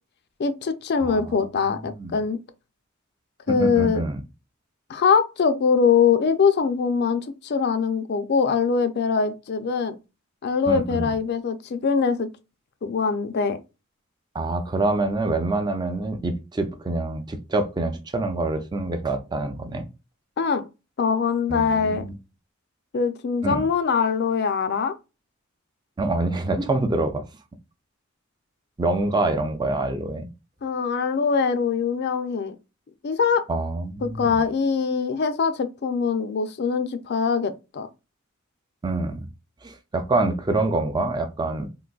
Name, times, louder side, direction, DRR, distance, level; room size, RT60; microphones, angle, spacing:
voice 1, 0.4-2.4 3.5-4.0 4.9-10.0 10.4-12.3 12.8-13.6 20.4-20.6 21.0-22.1 22.9-24.9 30.6-32.6 33.0-33.4 34.0-37.9, left 5 dB, 50° left, 0.4 m, -23 dB
voice 2, 1.0-1.7 2.0-2.2 3.5-4.2 10.7-11.1 14.3-19.9 21.5-22.1 23.4-23.6 26.0-27.2 28.8-30.3 33.5-34.3 38.8-39.3 39.6-41.7, right 2 dB, 20° right, 0.4 m, -26 dB
3.8 x 2.5 x 2.3 m
head